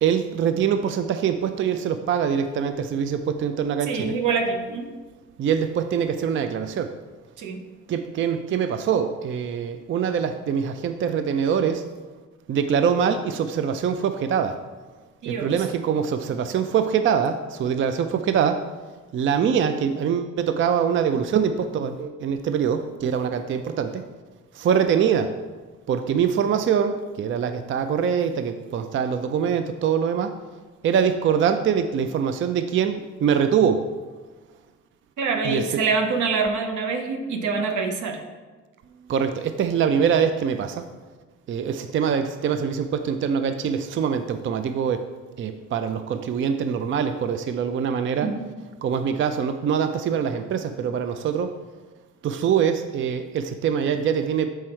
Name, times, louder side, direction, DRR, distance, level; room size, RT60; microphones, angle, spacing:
voice 1, 0.0-4.1 5.4-7.0 7.9-11.9 12.5-14.6 15.3-18.6 19.1-24.0 24.5-25.4 25.9-30.4 30.8-33.9 35.4-35.6 39.1-40.9 41.5-45.0 45.4-48.3 48.8-51.5 52.2-54.5, right 7 dB, 40° right, 9 dB, 0.4 m, -24 dB
voice 2, 3.8-4.9 7.4-7.6 15.2-15.5 35.2-38.2 48.2-48.5, right 4 dB, 80° right, 5 dB, 0.9 m, -25 dB
6.0 x 4.6 x 4.4 m, 1.3 s
cardioid pair, 90°, 30 cm